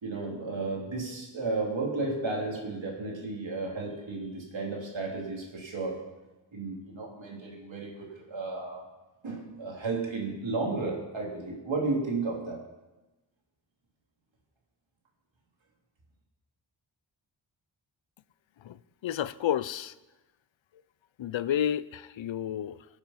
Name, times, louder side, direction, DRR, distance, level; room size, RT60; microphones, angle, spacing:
voice 1, 0.0-6.1 6.5-8.8 9.2-12.6, right 3 dB, 85° right, -1 dB, 3.0 m, -33 dB
voice 2, 18.6-19.9 21.2-22.8, left 10 dB, 85° left, 17 dB, 0.6 m, -31 dB
19.5 x 7.2 x 5.8 m, 1.1 s
wide cardioid pair, 80°, 45 cm